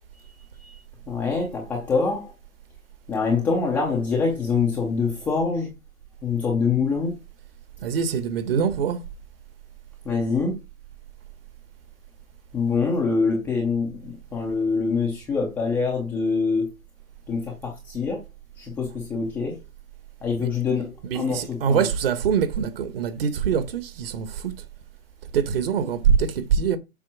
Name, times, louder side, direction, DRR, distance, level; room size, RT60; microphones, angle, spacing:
voice 1, 0.4-0.8 1.1-2.3 3.1-5.7 6.2-7.1 10.0-10.6 12.5-16.7 17.3-18.2 18.6-19.6 20.2-21.9, left 4 dB, 5° left, 0.5 m, -25 dB
voice 2, 7.8-9.0 21.1-24.3 25.3-26.8, right 7 dB, 45° right, 1.2 m, -23 dB
7.6 x 5.1 x 4.8 m
hypercardioid pair, 140°, 41 cm